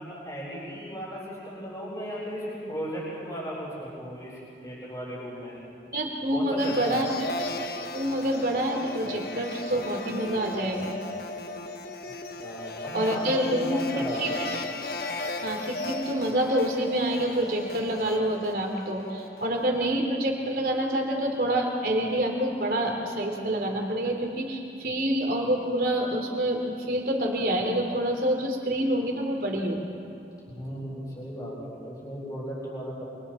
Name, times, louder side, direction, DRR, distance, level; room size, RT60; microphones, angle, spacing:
voice 1, 0.0-4.3 4.6-5.6 6.3-7.2 12.4-14.5 30.5-33.0, equal, 20° left, -9 dB, 7.7 m, -36 dB
voice 2, 5.9-7.1 7.9-11.0 12.9-14.4 15.4-29.9, right 1 dB, 55° right, 1 dB, 3.3 m, -27 dB
sound 1, 6.6-19.8, left 2 dB, 60° left, 1.2 m, -36 dB
28.5 x 27.0 x 4.5 m, 2.7 s
head